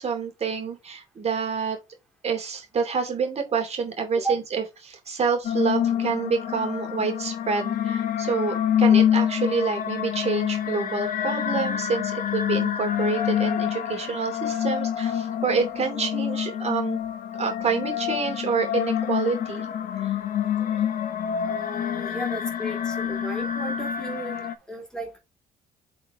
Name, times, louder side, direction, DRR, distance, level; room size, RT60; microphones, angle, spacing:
voice 1, 0.0-1.8 2.2-17.0 17.4-19.7 20.0-20.2 20.6-20.9, right 5 dB, 40° right, 2.6 m, -28 dB
sound 1, 5.4-24.6, left 9 dB, 55° left, 1.1 m, -26 dB
voice 2, 21.4-25.2, right 2 dB, 5° left, 3.1 m, -34 dB
7.9 x 4.2 x 3.7 m
cardioid pair, 110°, 17 cm